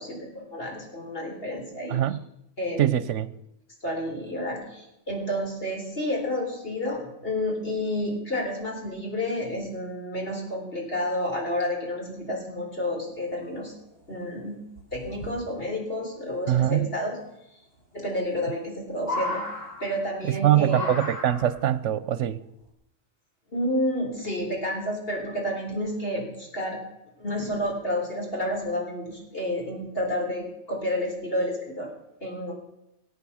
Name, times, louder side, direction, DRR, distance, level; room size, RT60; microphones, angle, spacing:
voice 1, 0.0-2.0 2.6-2.9 3.8-13.7 14.1-14.6 14.9-17.2 17.9-19.4 19.8-20.9 23.5-26.8 27.2-31.9 32.2-32.5, left 1 dB, 50° left, 0 dB, 4.1 m, -30 dB
voice 2, 2.8-3.3 16.5-16.9 20.2-22.4, right 12 dB, 80° right, 16 dB, 1.0 m, -23 dB
sound 1, 13.7-13.8 14.0-14.1 14.7-15.3 16.9-17.0 18.2-18.7 19.0-20.2 20.7-21.7 22.7-22.8, left 2 dB, 30° left, 5.7 m, -34 dB
19.5 x 8.5 x 7.1 m, 0.84 s
omnidirectional pair, 1.2 m